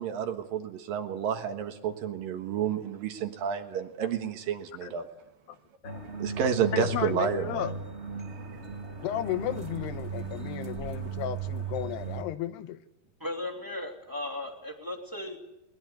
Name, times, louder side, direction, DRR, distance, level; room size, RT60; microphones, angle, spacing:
voice 1, 0.0-5.1 6.2-7.7, right 8 dB, 65° right, 6 dB, 2.9 m, -30 dB
sound 1, 5.8-12.2, right 4 dB, 25° right, 1.7 m, -36 dB
voice 2, 6.7-7.7 9.0-12.8, left 12 dB, 85° left, 12 dB, 3.1 m, -34 dB
voice 3, 13.2-15.4, left 1 dB, 5° right, 2 dB, 1.9 m, -36 dB
21.5 x 20.5 x 8.1 m, 0.89 s
omnidirectional pair, 4.6 m